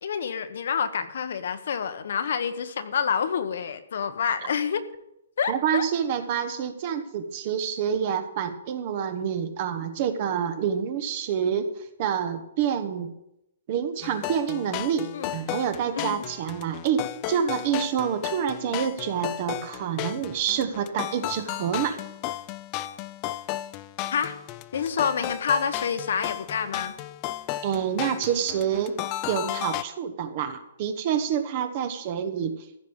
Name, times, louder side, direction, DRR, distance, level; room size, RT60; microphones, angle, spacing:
voice 1, 0.0-4.8 5.4-5.9 15.1-15.3 15.9-16.2 24.1-24.3 24.7-26.9, left 7 dB, 55° left, 10 dB, 1.1 m, -28 dB
voice 2, 5.5-13.1 13.7-22.0 27.6-28.9 29.3-32.5, right 8 dB, 30° right, 8 dB, 1.1 m, -27 dB
sound 1, 14.0-29.8, left 14 dB, 20° left, 0.4 m, -34 dB
15.0 x 5.2 x 8.7 m, 0.82 s
hypercardioid pair, 175°, 0 cm